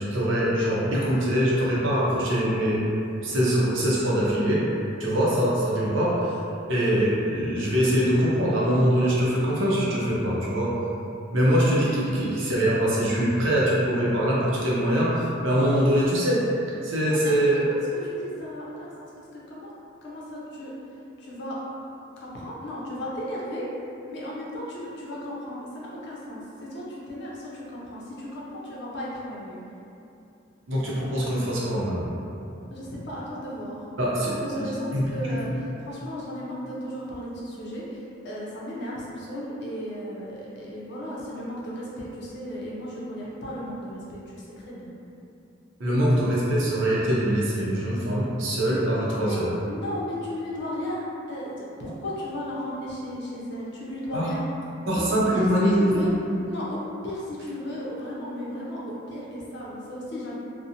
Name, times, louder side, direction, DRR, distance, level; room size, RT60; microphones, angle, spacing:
voice 1, 0.1-2.8 3.2-4.6 5.0-6.4 6.7-10.7 11.3-16.4 16.8-17.6 30.7-32.1 34.0-35.4 45.8-49.5 54.1-54.3 54.9-56.1, equal, 70° right, -6 dB, 0.6 m, -23 dB
voice 2, 17.1-17.5 18.0-19.7 20.0-20.7 21.2-21.6 22.2-23.7 24.1-29.6 32.7-33.9 34.3-35.5 35.8-44.9 49.2-49.4 49.6-54.4 55.0-56.1 56.5-60.4, equal, 60° left, -6 dB, 0.6 m, -35 dB
2.6 x 2.0 x 2.7 m, 2.7 s
head